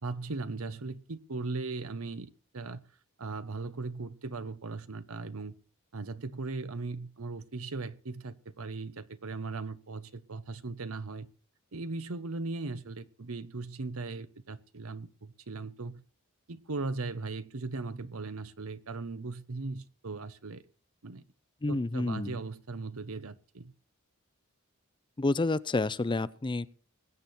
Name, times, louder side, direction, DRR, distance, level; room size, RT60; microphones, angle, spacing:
voice 1, 0.0-2.8 3.2-5.5 5.9-11.3 11.7-16.0 16.5-20.7 21.0-21.2 21.7-23.7, right 3 dB, 90° right, 0.9 m, -38 dB
voice 2, 21.6-22.4 25.2-26.7, left 2 dB, 25° left, 0.5 m, -29 dB
21.0 x 8.5 x 4.2 m
head